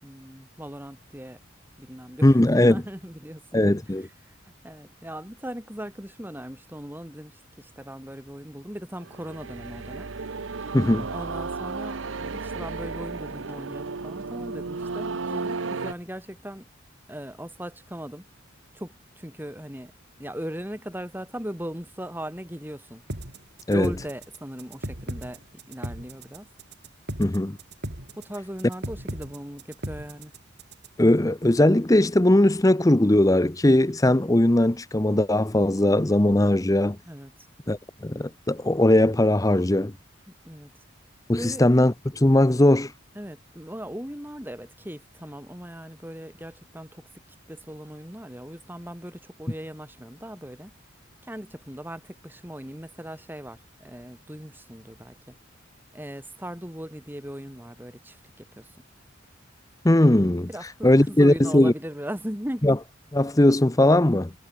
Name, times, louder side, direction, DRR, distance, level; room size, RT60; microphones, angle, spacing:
voice 1, 0.0-1.4 1.8-3.8 4.3-10.1 10.6-10.7 11.1-16.7 17.1-18.3 18.7-19.9 20.2-23.0 23.7-25.4 25.7-26.5 28.2-30.3 37.0-37.3 40.4-40.7 41.4-41.6 43.1-47.0 47.5-50.7 51.2-55.3 55.9-58.7 60.5-62.7, equal, 10° right, 4.6 m, -38 dB
voice 2, 2.2-2.8 3.5-4.1 10.7-11.1 23.7-23.9 27.2-27.6 31.0-37.0 37.7-37.8 38.0-39.9 41.3-42.9 59.8-60.5 60.8-61.7 62.6-62.8 63.1-64.3, left 1 dB, 15° left, 0.7 m, -19 dB
sound 1, 9.0-15.9, right 4 dB, 70° right, 0.9 m, -33 dB
sound 2, 23.1-31.1, right 1 dB, 55° right, 4.3 m, -36 dB
head